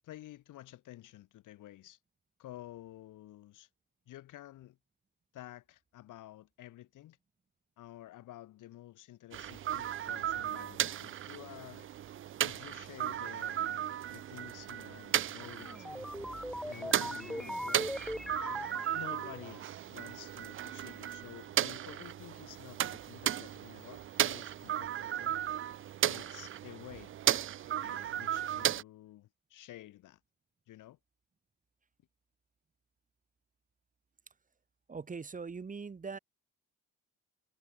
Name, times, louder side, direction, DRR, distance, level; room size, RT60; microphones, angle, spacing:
voice 1, 0.0-2.0 2.4-3.7 4.1-4.8 5.3-7.2 7.8-11.9 12.4-15.9 16.7-18.0 18.9-25.4 26.1-27.1 27.8-30.2 30.7-31.0, left 14 dB, 75° left, 2.9 m, -51 dB
sound 1, 9.3-28.8, right 11 dB, 40° right, 0.6 m, -35 dB
sound 2, 15.4-19.6, equal, ahead, 0.6 m, -40 dB
voice 2, 34.9-36.2, right 5 dB, 25° right, 3.1 m, -41 dB
cardioid pair, 130°, 31 cm